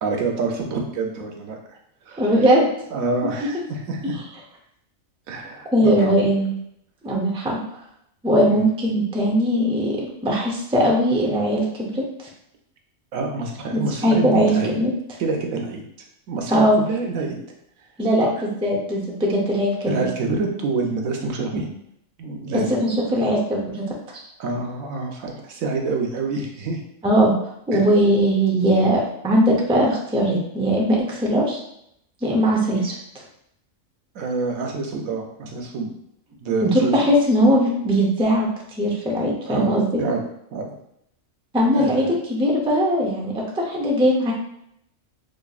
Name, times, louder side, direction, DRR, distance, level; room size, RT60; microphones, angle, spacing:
voice 1, 0.0-1.6 2.1-2.2 2.9-4.2 5.3-6.3 8.5-8.7 13.1-14.8 15.2-15.8 16.3-17.4 18.2-18.3 19.9-21.7 22.2-22.8 24.4-26.8 27.7-27.8 34.1-35.9 36.4-36.9 39.5-40.7 41.7-42.1, right 3 dB, 90° right, 2 dB, 1.1 m, -27 dB
voice 2, 2.2-2.6 5.7-6.5 7.0-7.6 8.2-10.0 10.2-12.0 13.7-14.9 16.5-16.8 18.0-20.1 22.7-24.2 27.0-27.3 27.7-31.6 32.2-32.9 36.6-38.5 38.8-40.0 41.5-44.3, equal, 10° right, -2 dB, 0.3 m, -20 dB
5.1 x 2.6 x 2.4 m, 0.74 s
omnidirectional pair, 1.4 m